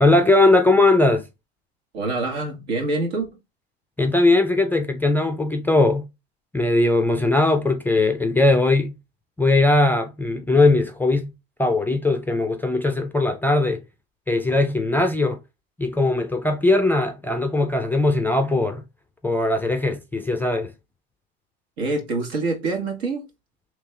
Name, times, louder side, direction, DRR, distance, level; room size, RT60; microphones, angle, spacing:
voice 1, 0.0-1.3 4.0-6.1 6.5-8.9 9.4-11.3 11.6-13.8 14.3-15.4 15.8-18.8 19.2-20.7, left 2 dB, 5° left, 0.3 m, -19 dB
voice 2, 1.9-3.3 21.8-23.3, right 3 dB, 75° right, 1.6 m, -25 dB
3.4 x 3.2 x 3.3 m
hypercardioid pair, 100°, 32 cm